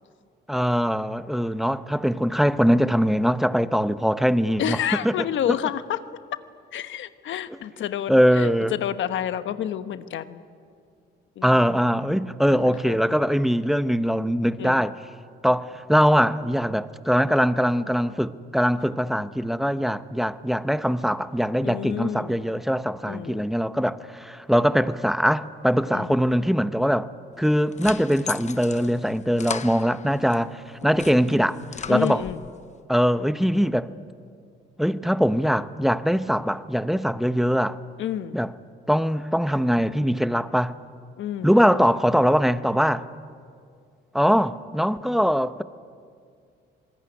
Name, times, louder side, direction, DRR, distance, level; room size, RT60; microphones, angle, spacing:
voice 1, 0.5-5.6 8.1-8.7 11.4-14.9 15.4-27.1 27.4-31.6 31.9-32.3 32.9-33.9 34.8-37.8 38.3-38.5 38.9-40.8 41.4-43.1 44.1-45.6, equal, ahead, 0.8 m, -22 dB
voice 2, 4.6-6.0 6.7-10.4 11.4-11.6 12.5-13.0 14.6-14.8 21.6-22.4 23.1-23.5 25.9-26.2 30.8-31.5 31.9-32.4 38.0-38.4 41.2-41.5, left 10 dB, 75° left, 1.2 m, -29 dB
Opening door in stairwell, 27.4-30.4 30.8-32.5, left 6 dB, 35° left, 0.9 m, -37 dB
26.0 x 20.5 x 9.9 m
cardioid pair, 90°, 20 cm